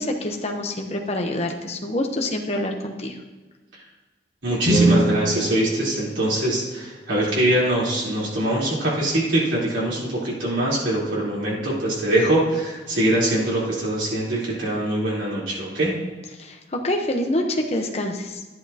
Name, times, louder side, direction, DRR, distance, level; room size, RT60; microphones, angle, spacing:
voice 1, 0.0-3.2 16.4-18.4, left 1 dB, 35° left, 2 dB, 0.9 m, -26 dB
voice 2, 4.4-15.9, right 1 dB, 85° right, -7 dB, 3.8 m, -23 dB
sound 1, 4.6-6.8, right 1 dB, 55° right, 2.2 m, -23 dB
12.0 x 10.5 x 2.9 m, 1.3 s
head